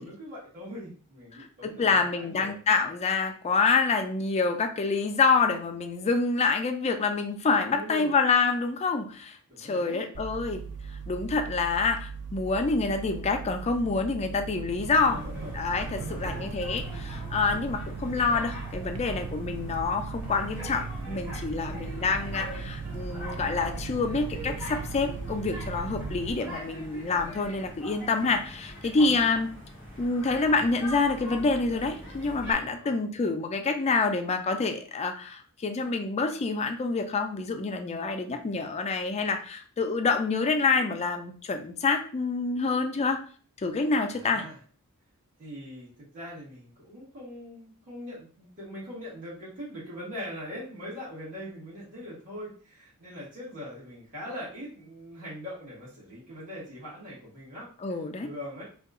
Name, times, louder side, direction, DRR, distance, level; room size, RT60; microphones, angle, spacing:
voice 1, 0.0-2.6 7.7-8.1 9.5-10.1 15.0-16.6 21.5-21.9 29.0-29.1 32.7-32.9 44.0-44.6 45.4-58.6, equal, 35° right, -8 dB, 1.5 m, -42 dB
voice 2, 1.4-10.6 11.1-15.2 15.5-29.5 30.0-43.2 43.6-44.4 57.8-58.3, left 4 dB, 30° left, 6 dB, 0.3 m, -27 dB
sound 1, 10.1-26.3, right 4 dB, 75° right, 0.4 m, -38 dB
sound 2, 15.1-32.5, equal, 10° right, 1.1 m, -43 dB
2.8 x 2.3 x 3.6 m, 0.43 s
head